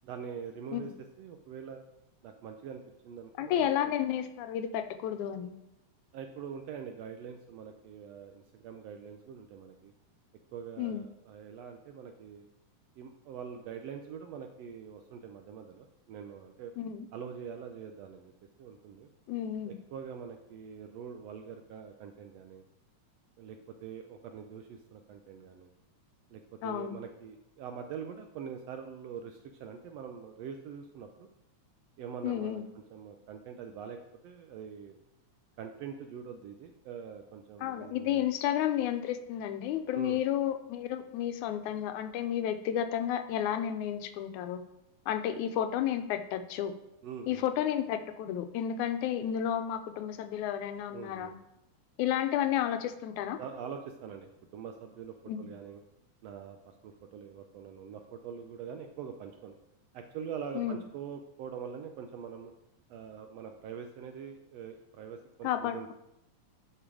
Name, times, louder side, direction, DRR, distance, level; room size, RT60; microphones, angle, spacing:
voice 1, 0.0-0.9 1.2-1.8 2.2-3.9 6.1-9.9 10.5-12.5 13.0-16.7 17.1-18.3 18.6-19.1 19.7-22.6 23.4-25.7 26.3-31.3 32.0-32.6 32.9-34.0 34.2-34.9 35.6-38.3 39.9-40.2 47.0-47.4 50.9-51.3 53.4-54.3 54.5-55.8 56.2-56.6 56.8-59.5 59.9-62.5 62.9-65.9, right 7 dB, 75° right, 5 dB, 1.5 m, -44 dB
voice 2, 3.4-5.5 10.8-11.0 16.8-17.1 19.3-19.8 26.6-27.0 32.2-32.6 37.6-44.6 45.1-46.7 47.3-51.4 52.0-53.4 55.3-55.5 60.6-60.8 65.4-65.9, left 10 dB, 85° left, 8 dB, 2.1 m, -32 dB
9.9 x 5.1 x 4.8 m, 0.85 s
omnidirectional pair, 3.4 m